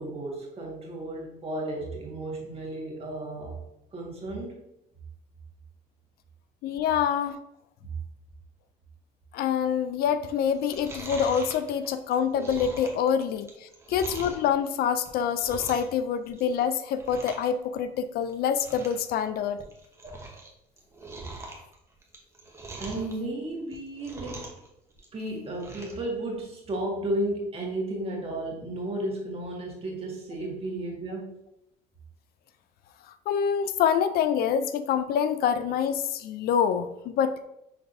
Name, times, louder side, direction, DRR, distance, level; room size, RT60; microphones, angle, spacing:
voice 1, 0.0-3.6 3.9-4.6 22.8-24.5 25.1-31.3, right 1 dB, 35° right, -2 dB, 1.6 m, -33 dB
voice 2, 6.6-7.4 9.3-19.6 33.3-37.4, left 8 dB, 65° left, 11 dB, 0.4 m, -26 dB
Chewing mastication, 10.5-14.5 14.9-16.0 16.3-16.6 16.9-17.5 17.8-17.9 18.3-18.4 18.6-19.0 19.4-20.5 20.8-23.1 23.6-24.7 24.9-26.0 26.4-26.5, right 2 dB, 15° right, 1.0 m, -42 dB
5.8 x 3.4 x 2.6 m, 0.82 s
cardioid pair, 110°, 17 cm